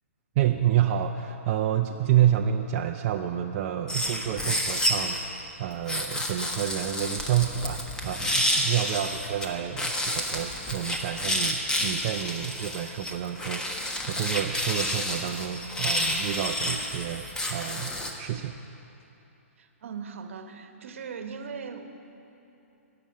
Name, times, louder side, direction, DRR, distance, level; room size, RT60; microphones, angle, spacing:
voice 1, 0.4-5.2 5.6-18.6, right 10 dB, 40° right, 4 dB, 0.5 m, -28 dB
sound 1, 3.9-5.2 5.9-9.5 9.8-18.1, left 1 dB, 10° left, 1.2 m, -29 dB
voice 2, 19.6-21.9, right 6 dB, 65° right, 7 dB, 1.2 m, -39 dB
14.5 x 6.9 x 9.4 m, 3.0 s
hypercardioid pair, 125°, 8 cm